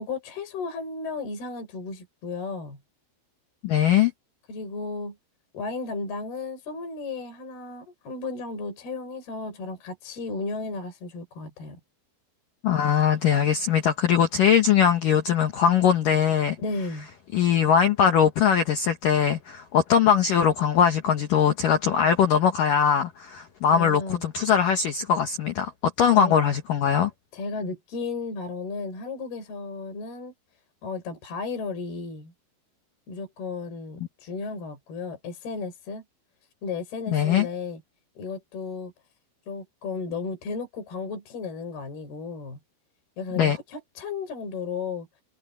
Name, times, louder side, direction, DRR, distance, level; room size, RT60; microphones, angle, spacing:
voice 1, 0.0-2.8 4.5-5.2 5.5-11.8 16.6-17.1 23.7-24.2 26.1-26.4 27.3-30.3 30.8-32.3 33.1-36.0 36.6-37.8 38.2-38.9 39.5-42.6 43.2-45.1, left 4 dB, 50° left, 7.7 m, -34 dB
voice 2, 3.6-4.1 12.6-16.6 17.3-27.1 37.1-37.5 43.4-43.6, left 8 dB, 75° left, 2.0 m, -21 dB
omnidirectional pair, 5.8 m